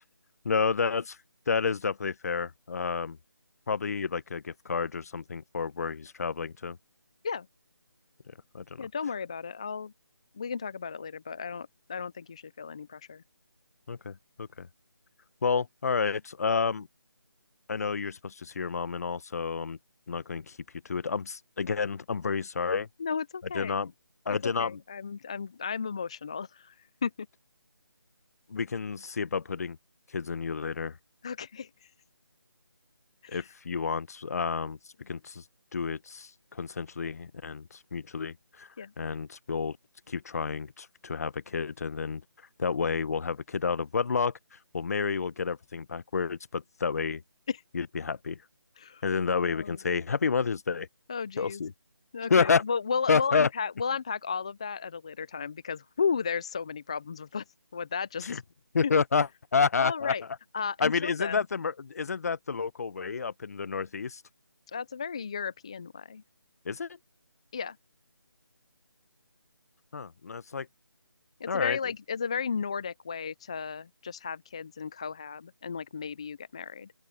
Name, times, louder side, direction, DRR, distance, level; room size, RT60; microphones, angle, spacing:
voice 1, 0.4-1.2 1.5-3.2 3.7-6.8 8.5-8.9 13.9-14.7 15.4-16.9 17.7-19.8 20.1-20.6 20.8-22.9 23.5-23.9 24.3-24.8 28.5-29.8 30.1-31.0 33.3-34.8 35.1-35.4 35.7-38.7 39.0-39.8 40.1-42.2 42.6-47.2 47.7-48.4 49.0-50.9 51.4-51.7 52.3-52.6 53.1-53.5 58.2-58.4 58.7-60.1 60.8-64.2 66.6-67.0 69.9-70.7 71.5-71.8, left 5 dB, 40° left, 0.9 m, -30 dB
voice 2, 8.8-9.9 10.4-13.2 23.0-23.8 24.6-26.8 27.0-27.1 31.2-31.9 33.2-33.5 38.8-38.9 47.5-47.6 48.8-49.0 49.5-49.7 51.1-51.6 52.1-57.4 57.7-58.4 58.8-58.9 59.8-60.2 60.5-61.4 64.7-66.2 67.5-67.8 71.4-76.9, left 6 dB, 15° left, 0.4 m, -34 dB
open air
figure-of-eight pair, 160°, 13 cm